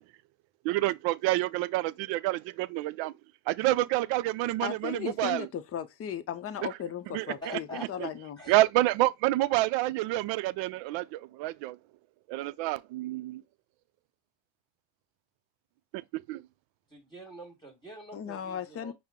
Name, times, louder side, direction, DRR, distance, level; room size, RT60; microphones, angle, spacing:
voice 1, 0.6-3.1 3.5-5.5 7.1-7.6 8.0-8.1 8.5-11.8 12.3-13.4 16.1-16.4, right 17 dB, 65° right, 0.5 m, -28 dB
voice 2, 4.6-8.4 18.1-18.9, left 9 dB, 30° left, 0.6 m, -36 dB
voice 3, 7.4-7.9 8.4-8.5 16.9-18.9, left 1 dB, 10° left, 1.6 m, -45 dB
5.5 x 2.1 x 3.6 m
supercardioid pair, 90°, 49 cm